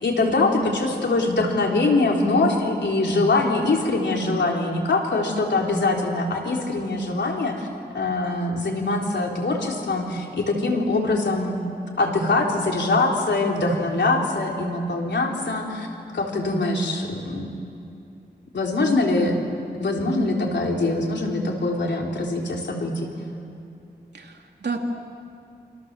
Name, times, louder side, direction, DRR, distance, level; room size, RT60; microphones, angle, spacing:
voice 1, 0.0-7.7 7.9-11.6 12.0-15.9 16.1-17.5 18.5-19.5 19.8-23.1, left 2 dB, 90° left, 0 dB, 3.8 m, -23 dB
voice 2, 0.5-0.9 24.1-24.8, right 4 dB, 75° right, 2 dB, 3.0 m, -31 dB
28.0 x 27.0 x 7.6 m, 2.5 s
wide cardioid pair, 65°, 18 cm